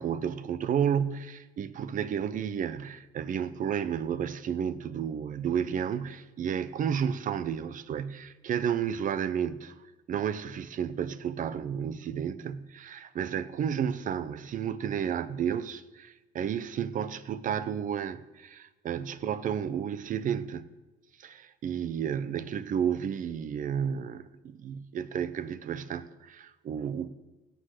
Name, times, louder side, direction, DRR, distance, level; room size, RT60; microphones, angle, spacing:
voice 1, 0.0-9.7 10.1-20.7 21.2-27.1, right 8 dB, 50° right, 0.8 m, -32 dB
16.0 x 7.9 x 6.6 m
cardioid pair, 110°, 17 cm